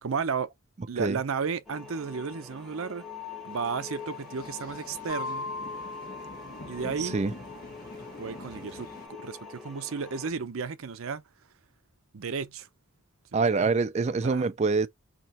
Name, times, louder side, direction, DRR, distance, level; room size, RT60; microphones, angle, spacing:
voice 1, 0.0-0.5 0.9-3.0 3.4-5.5 6.7-7.2 8.2-8.9 9.2-11.2 12.1-12.7 13.3-13.7 14.2-14.5, right 5 dB, 75° right, 0.6 m, -33 dB
sound 1, 1.7-10.3, left 5 dB, ahead, 1.0 m, -44 dB
sound 2, 3.5-9.1, left 2 dB, 45° left, 1.2 m, -47 dB
sound 3, 5.1-7.6, left 2 dB, 85° left, 2.1 m, -39 dB
voice 2, 7.0-7.3 13.3-14.9, right 4 dB, 30° right, 0.3 m, -25 dB
4.3 x 2.9 x 4.1 m
head